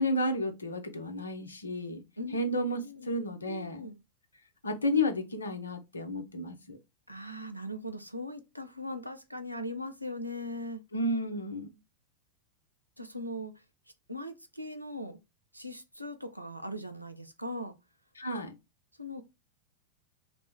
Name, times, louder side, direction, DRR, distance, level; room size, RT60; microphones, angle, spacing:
voice 1, 0.0-2.0 2.3-3.9 4.6-6.8 10.9-11.8 18.2-18.5, left 1 dB, 75° left, 0.5 m, -32 dB
voice 2, 2.2-3.1 3.5-4.0 7.1-10.8 13.0-13.6 14.1-15.2 15.5-17.8 19.0-19.2, left 1 dB, 90° right, 0.4 m, -40 dB
2.5 x 2.0 x 3.4 m
figure-of-eight pair, 90°, 0 cm